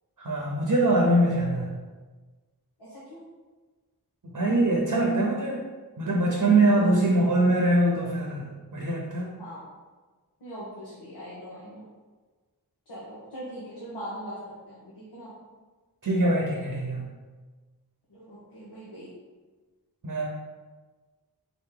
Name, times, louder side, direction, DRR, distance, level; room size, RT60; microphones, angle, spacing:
voice 1, 0.2-1.8 4.2-5.6 6.0-8.5 8.7-9.3 16.0-17.1 20.0-20.3, right 1 dB, 55° right, -2 dB, 0.8 m, -23 dB
voice 2, 2.8-3.2 9.4-9.6 10.4-11.9 12.9-14.4 14.7-15.3 18.1-19.1, equal, 85° left, -10 dB, 1.1 m, -41 dB
3.9 x 2.9 x 3.8 m, 1.3 s
wide cardioid pair, 40°, 38 cm